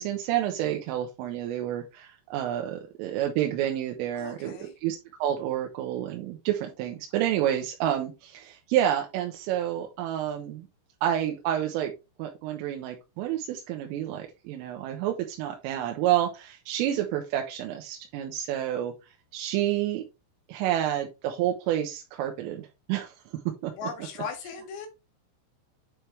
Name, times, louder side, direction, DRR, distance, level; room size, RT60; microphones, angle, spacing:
voice 1, 0.0-4.5 4.8-10.7 11.0-11.9 12.2-18.9 19.3-20.0 20.5-23.1 23.6-23.7, right 11 dB, 80° right, 3.4 m, -29 dB
voice 2, 4.1-4.7 23.8-24.9, left 5 dB, 85° left, 2.1 m, -37 dB
9.7 x 4.4 x 3.3 m
omnidirectional pair, 6.0 m